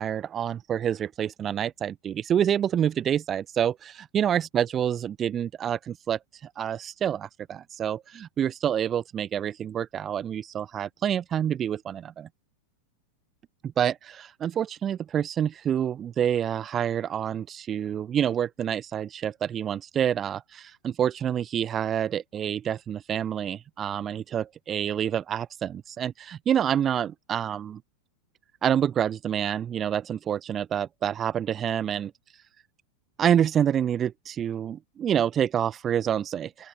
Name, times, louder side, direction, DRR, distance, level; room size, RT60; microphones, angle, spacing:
voice 1, 0.0-12.3 13.6-27.8 28.6-32.1 33.2-36.7, right 9 dB, 25° right, 1.3 m, -27 dB
open air
figure-of-eight pair, 90°, 0 cm